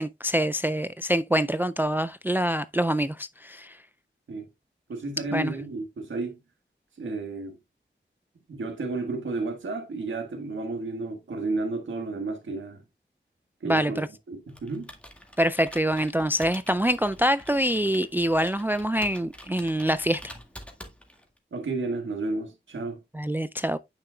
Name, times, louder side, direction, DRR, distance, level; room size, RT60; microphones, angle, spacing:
voice 1, 0.0-3.7 5.3-5.5 13.7-14.1 15.4-20.3 23.1-23.8, equal, 10° right, 0.3 m, -25 dB
voice 2, 4.9-6.4 7.0-7.6 8.5-12.8 13.6-14.9 21.5-23.0, right 3 dB, 85° right, 1.5 m, -32 dB
Computer keyboard, 14.5-21.4, equal, 5° left, 1.9 m, -47 dB
8.8 x 6.8 x 2.3 m
wide cardioid pair, 90°, 19 cm